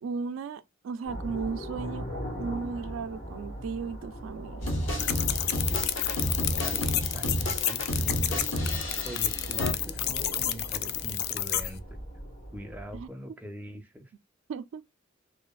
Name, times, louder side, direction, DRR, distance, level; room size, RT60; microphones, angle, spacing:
voice 1, 0.0-2.1 2.4-4.7 12.9-13.1 14.5-14.8, right 5 dB, 80° right, 0.3 m, -35 dB
sound 1, 1.0-13.1, equal, 90° left, 1.6 m, -39 dB
sound 2, 4.6-9.7, equal, 75° left, 0.8 m, -31 dB
sound 3, 5.0-11.7, left 11 dB, 55° left, 0.3 m, -30 dB
voice 2, 6.6-12.0 12.5-14.0, right 1 dB, 10° right, 0.4 m, -42 dB
2.6 x 2.4 x 2.2 m
head